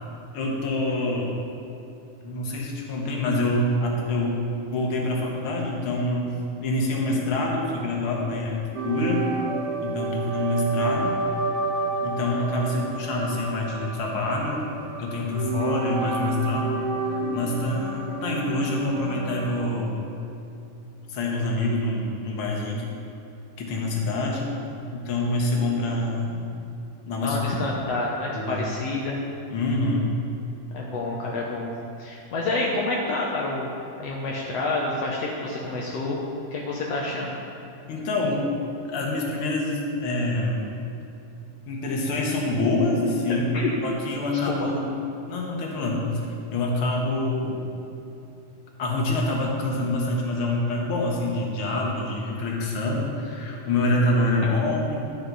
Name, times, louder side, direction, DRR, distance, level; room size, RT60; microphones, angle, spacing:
voice 1, 0.3-1.3 2.2-4.4 4.7-6.3 6.6-8.6 8.8-9.3 9.8-11.2 12.0-14.6 15.0-16.7 17.0-20.0 21.1-22.9 23.6-24.4 24.9-26.4 27.1-27.4 28.3-28.7 29.5-30.1 37.9-38.4 38.9-40.7 41.7-45.0 45.3-46.1 46.5-47.6 48.8-55.1, left 2 dB, 55° left, -1 dB, 1.6 m, -26 dB
sound 1, 8.8-19.6, right 3 dB, 80° right, 2.9 m, -30 dB
voice 2, 27.2-29.2 30.7-31.7 32.0-33.7 34.0-36.2 36.5-37.3 43.5-43.7 44.3-44.7, left 2 dB, 75° left, -3 dB, 1.4 m, -28 dB
12.0 x 9.5 x 4.1 m, 2.7 s
omnidirectional pair, 4.2 m